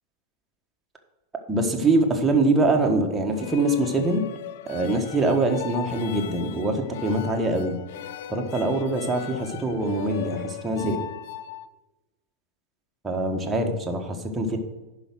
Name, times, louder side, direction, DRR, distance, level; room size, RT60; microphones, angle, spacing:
voice 1, 1.5-4.2 4.6-7.8 8.3-11.0 13.0-14.6, right 2 dB, 10° right, 1 dB, 1.4 m, -24 dB
sound 1, 3.3-11.7, left 12 dB, 55° left, 0.4 m, -38 dB
11.0 x 5.0 x 6.2 m, 1.1 s
figure-of-eight pair, 90°, 0 cm